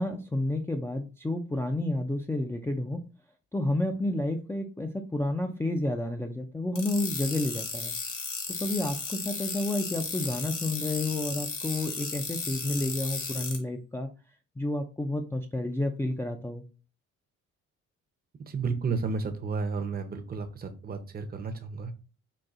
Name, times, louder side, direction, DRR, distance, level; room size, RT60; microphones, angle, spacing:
voice 1, 0.0-3.0 3.5-7.9 8.6-14.1 14.6-16.6, left 1 dB, 10° left, 3 dB, 0.3 m, -30 dB
sound 1, 6.8-13.6, left 4 dB, 45° left, 1.1 m, -35 dB
voice 2, 18.5-21.9, right 4 dB, 30° right, 7 dB, 0.6 m, -32 dB
4.0 x 2.6 x 2.4 m, 0.34 s
cardioid pair, 90°, 30 cm